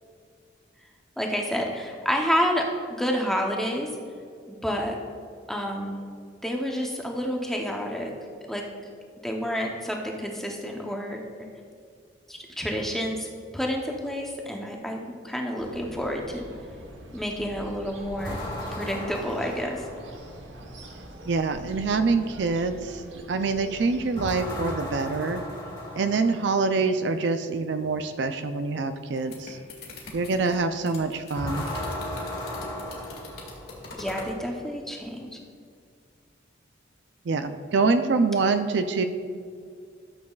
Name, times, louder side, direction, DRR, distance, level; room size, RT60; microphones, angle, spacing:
voice 1, 1.2-2.7 3.0-3.9 4.5-5.0 5.5-6.0 6.4-8.1 8.5-8.6 9.2-11.2 12.3-13.3 13.5-16.5 17.1-18.4 18.7-19.8 33.9-35.4, equal, ahead, 0 dB, 0.7 m, -29 dB
sound 1, 15.6-24.5, right 1 dB, 85° right, 1.1 m, -44 dB
sound 2, 18.2-20.5 24.2-26.7 31.3-34.0, left 1 dB, 25° left, 1.7 m, -35 dB
voice 2, 21.3-23.0 23.3-25.4 26.0-29.6 30.1-31.7 37.3-39.1, right 4 dB, 65° right, 9 dB, 0.4 m, -25 dB
sound 3, 29.0-34.4, left 2 dB, 55° left, 2.0 m, -43 dB
13.0 x 7.4 x 2.4 m, 2.3 s
head